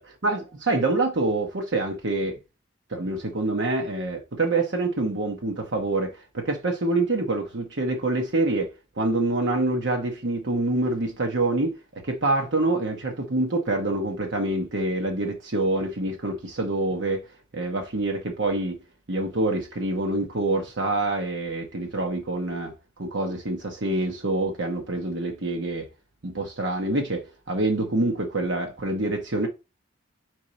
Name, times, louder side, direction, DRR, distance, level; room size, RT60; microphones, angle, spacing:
voice 1, 0.7-2.4 2.9-17.2 17.5-18.8 19.1-22.7 23.0-25.9 26.2-29.5, right 2 dB, 60° right, 1.0 m, -26 dB
5.0 x 4.6 x 4.1 m
head